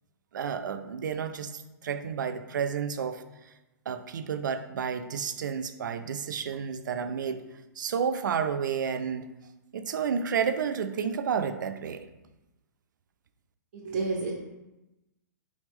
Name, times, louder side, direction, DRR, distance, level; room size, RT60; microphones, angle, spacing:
voice 1, 0.3-3.2 3.9-7.4 7.8-9.3 9.7-12.0, right 7 dB, 90° right, 11 dB, 0.4 m, -31 dB
voice 2, 13.7-14.4, right 3 dB, 45° right, -5 dB, 0.7 m, -30 dB
3.4 x 3.1 x 3.5 m, 1.0 s
hypercardioid pair, 165°, 10 cm